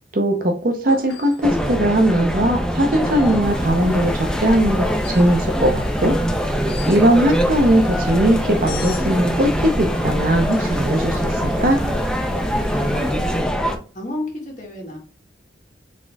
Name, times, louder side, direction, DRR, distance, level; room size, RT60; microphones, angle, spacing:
voice 1, 0.1-6.2 6.9-11.8, right 1 dB, 50° right, 3 dB, 0.7 m, -19 dB
sound 1, 0.9-1.5 3.0-3.5 4.9-5.3 6.6-7.1 8.7-9.1 10.4-10.9 13.7-13.8, left 5 dB, 65° left, 1.5 m, -39 dB
sound 2, 1.4-13.8, equal, 5° left, 0.5 m, -23 dB
sound 3, 3.4-13.4, equal, 25° left, 1.2 m, -30 dB
voice 2, 12.5-13.5 13.9-15.0, left 1 dB, 45° left, -1 dB, 1.8 m, -32 dB
4.2 x 3.7 x 3.4 m, 0.40 s
head